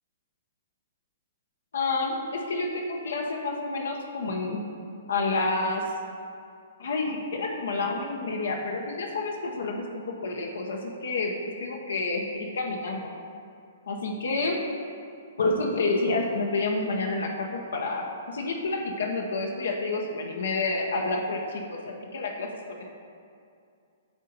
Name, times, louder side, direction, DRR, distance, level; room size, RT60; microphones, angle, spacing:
voice 1, 1.7-4.6 5.1-5.8 6.8-11.3 11.6-13.1 13.9-14.6 15.4-22.5, left 3 dB, 80° left, 0 dB, 0.8 m, -29 dB
7.8 x 2.8 x 5.2 m, 2.4 s
hypercardioid pair, 130°, 0 cm